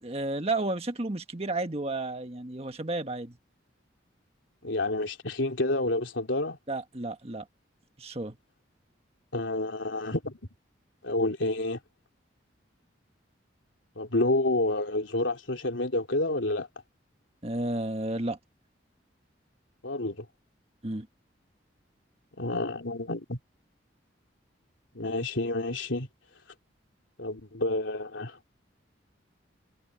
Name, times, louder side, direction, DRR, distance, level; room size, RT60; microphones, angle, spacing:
voice 1, 0.0-3.4 6.7-7.5 8.0-8.4 17.4-18.4 20.8-21.1, right 2 dB, 35° right, 1.5 m, -32 dB
voice 2, 4.6-6.6 9.3-10.4 11.0-11.8 13.9-16.7 19.8-20.3 22.4-23.4 24.9-26.1 27.2-28.4, left 2 dB, 85° left, 3.2 m, -29 dB
head